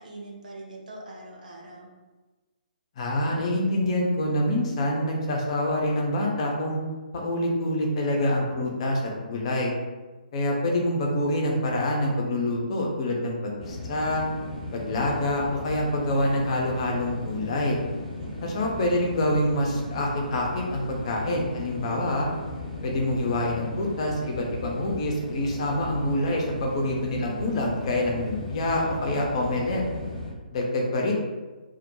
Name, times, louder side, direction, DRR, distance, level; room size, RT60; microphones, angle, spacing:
voice 1, 0.0-1.9 18.2-18.7, right 2 dB, 55° right, -2 dB, 0.5 m, -43 dB
voice 2, 3.0-6.8 7.1-9.7 10.3-14.3 14.7-17.8 18.4-22.3 22.8-29.8 30.5-31.1, left 1 dB, 40° left, -1 dB, 0.5 m, -26 dB
sound 1, 13.6-30.3, left 1 dB, ahead, 0.7 m, -37 dB
2.1 x 2.1 x 2.8 m, 1.2 s
figure-of-eight pair, 130°, 5 cm